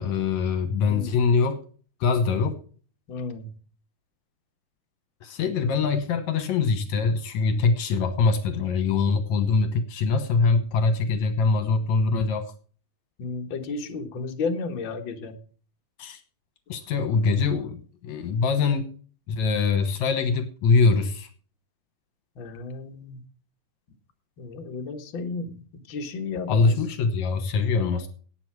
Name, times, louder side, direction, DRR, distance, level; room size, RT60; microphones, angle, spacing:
voice 1, 0.0-1.6 2.0-2.6 5.2-12.5 16.0-16.2 16.7-18.9 19.3-21.3 26.5-28.1, left 4 dB, 70° left, 9 dB, 2.4 m, -23 dB
voice 2, 0.8-1.2 3.1-3.5 13.2-15.4 22.4-23.2 24.4-25.6 25.9-26.7, left 4 dB, 45° left, 3 dB, 1.9 m, -33 dB
18.0 x 7.1 x 4.7 m, 0.41 s
omnidirectional pair, 3.5 m